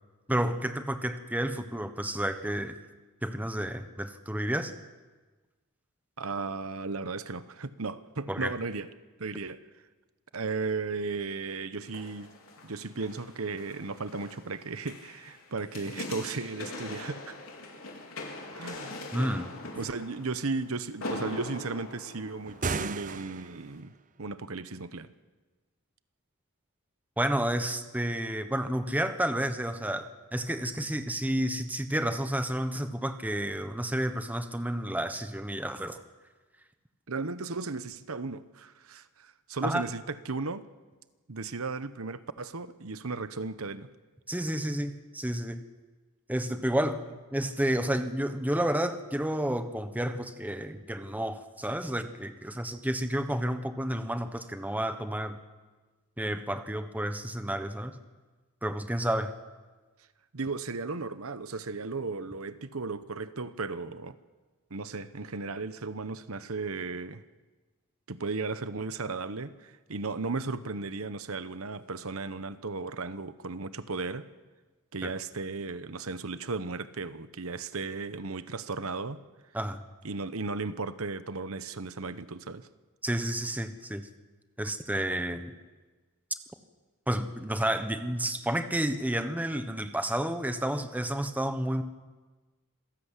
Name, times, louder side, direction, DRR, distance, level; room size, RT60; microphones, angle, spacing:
voice 1, 0.3-2.8 3.2-4.7 8.3-8.5 19.1-19.5 27.2-36.0 39.6-39.9 44.3-45.6 46.3-47.0 47.3-55.4 56.2-58.0 58.6-59.3 75.0-75.1 79.5-79.8 83.0-84.1 84.6-85.5 87.1-91.8, right 1 dB, 5° right, 1.2 m, -30 dB
voice 2, 6.2-8.9 9.2-9.6 10.3-12.3 12.6-17.4 18.5-19.0 19.8-25.1 37.1-40.7 41.3-43.9 60.3-64.2 64.7-67.2 68.1-74.3 74.9-79.2 80.0-82.7, right 3 dB, 75° right, 1.0 m, -35 dB
sound 1, 11.8-23.1 23.6-23.7, left 2 dB, 70° left, 4.5 m, -42 dB
sound 2, 22.5-23.8, right 4 dB, 35° right, 0.7 m, -34 dB
26.5 x 17.0 x 8.4 m
head